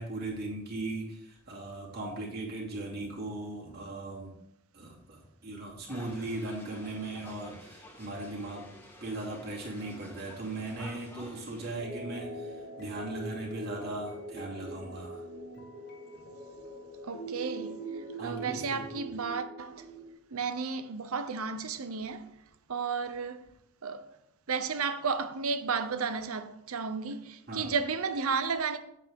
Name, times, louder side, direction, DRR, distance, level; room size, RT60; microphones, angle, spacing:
voice 1, 0.0-4.3 4.7-8.6 9.0-15.2 18.2-18.9 27.5-27.7, right 2 dB, 45° right, 2.6 m, -38 dB
sound 1, 5.9-11.8, left 1 dB, 10° left, 1.5 m, -51 dB
sound 2, 11.8-20.1, right 2 dB, 50° left, 1.5 m, -42 dB
voice 2, 17.0-17.7 18.2-19.8 20.3-22.3 22.7-23.4 23.8-24.0 24.5-28.8, right 5 dB, 85° right, 0.8 m, -33 dB
8.4 x 8.1 x 3.7 m
head